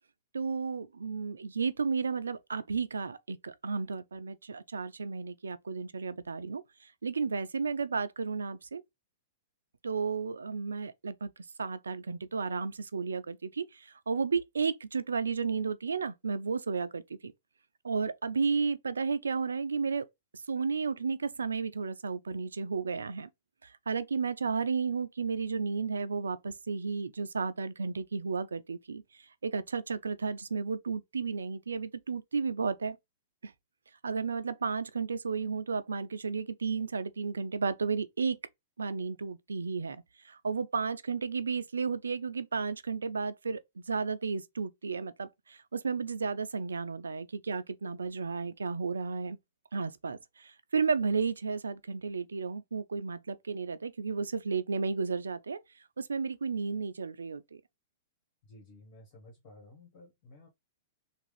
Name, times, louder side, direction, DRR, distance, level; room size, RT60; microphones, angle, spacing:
voice 1, 0.3-6.6 7.0-8.8 9.8-11.3 11.6-17.3 17.8-20.1 20.5-23.3 23.6-29.0 29.4-33.0 33.4-33.5 34.0-38.4 38.8-43.6 43.9-49.4 49.7-55.6 56.0-57.6, right 5 dB, 85° right, 0.4 m, -33 dB
voice 2, 58.4-60.5, left 2 dB, 50° left, 1.6 m, -54 dB
3.5 x 2.4 x 3.2 m
hypercardioid pair, 115°, 0 cm